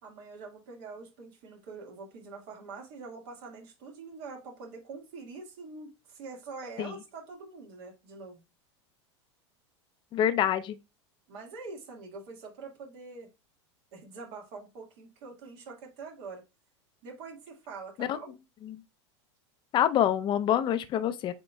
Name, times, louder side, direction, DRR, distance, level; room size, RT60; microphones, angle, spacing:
voice 1, 0.0-8.4 11.3-13.3 13.9-16.4 17.0-18.3, right 4 dB, 60° right, 1.7 m, -44 dB
voice 2, 10.1-10.8 18.0-18.2 18.6-18.8 19.7-21.3, left 10 dB, 30° left, 0.5 m, -26 dB
7.9 x 3.0 x 2.2 m
hypercardioid pair, 100°, 15 cm